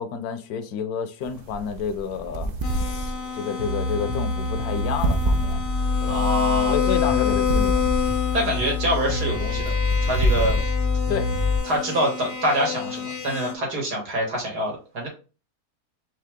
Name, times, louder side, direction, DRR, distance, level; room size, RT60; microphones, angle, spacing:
voice 1, 0.0-5.6 6.0-6.2 6.7-7.9 11.1-11.3, left 7 dB, 75° left, 1.1 m, -30 dB
sound 1, 1.2-11.8, right 2 dB, 55° right, 0.6 m, -29 dB
sound 2, 2.6-13.5, left 8 dB, 55° left, 0.5 m, -28 dB
sound 3, 3.6-11.6, left 3 dB, 35° right, 1.1 m, -26 dB
voice 2, 6.1-6.7 8.3-9.7 10.0-10.6 11.6-15.1, right 1 dB, 75° right, 2.4 m, -25 dB
4.6 x 3.1 x 3.5 m
omnidirectional pair, 1.7 m